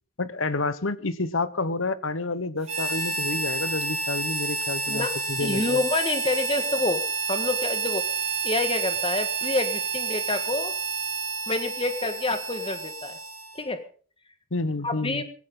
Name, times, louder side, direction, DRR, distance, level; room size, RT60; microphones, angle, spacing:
voice 1, 0.2-5.8 14.5-15.2, left 3 dB, 65° left, 15 dB, 1.1 m, -29 dB
Harmonica, 2.6-13.7, right 4 dB, 30° right, 3.9 m, -30 dB
voice 2, 5.4-7.0 7.3-8.0 8.4-10.7 11.5-13.2 13.5-13.8 14.8-15.2, left 2 dB, 25° left, 9 dB, 1.7 m, -27 dB
18.0 x 15.5 x 3.9 m, 0.41 s
head